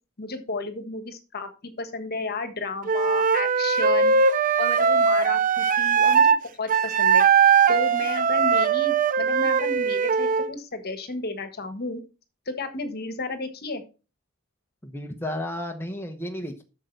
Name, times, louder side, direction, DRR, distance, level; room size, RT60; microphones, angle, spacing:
voice 1, 0.2-4.1 4.6-7.2 7.7-12.0 12.5-13.8, left 3 dB, 45° left, 9 dB, 1.4 m, -33 dB
Wind instrument woodwind instrument, 2.9-6.4 6.7-10.5, right 6 dB, 35° right, 0.5 m, -20 dB
voice 2, 14.8-16.6, left 1 dB, 10° left, 3 dB, 0.9 m, -33 dB
8.2 x 6.6 x 4.6 m, 0.33 s
head